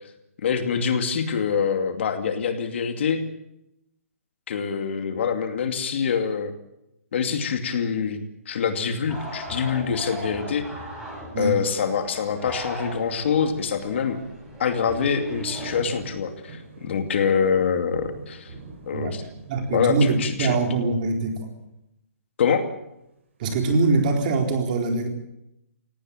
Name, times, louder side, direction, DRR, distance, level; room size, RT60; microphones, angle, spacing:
voice 1, 0.4-3.2 4.5-6.5 7.1-8.2 8.5-10.6 11.4-14.2 14.6-18.5 18.9-19.2 19.7-20.6 22.4-22.7, left 6 dB, 50° left, 7 dB, 2.5 m, -25 dB
sound 1, 9.1-15.8, right 1 dB, 5° right, 6.5 m, -38 dB
sound 2, 15.3-21.2 23.4-24.0, right 3 dB, 50° right, 6.9 m, -44 dB
voice 2, 19.5-21.5 23.4-25.1, right 3 dB, 35° right, 3 dB, 4.1 m, -23 dB
18.5 x 17.5 x 9.0 m, 0.84 s
hypercardioid pair, 165°, 8 cm